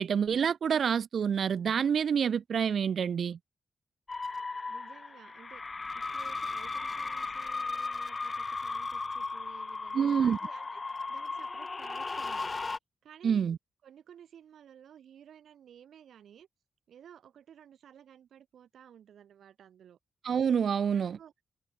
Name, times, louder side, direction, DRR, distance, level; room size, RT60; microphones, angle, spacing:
voice 1, 0.0-3.4 9.9-10.4 13.2-13.6 20.2-21.2, right 7 dB, 55° right, 0.5 m, -27 dB
sound 1, 4.1-12.8, left 3 dB, 25° left, 0.3 m, -36 dB
voice 2, 4.7-5.6 5.9-12.6 13.0-13.5 13.8-16.5 16.9-20.0 20.9-21.3, right 9 dB, 80° right, 7.7 m, -55 dB
wide cardioid pair, 175°, 0 cm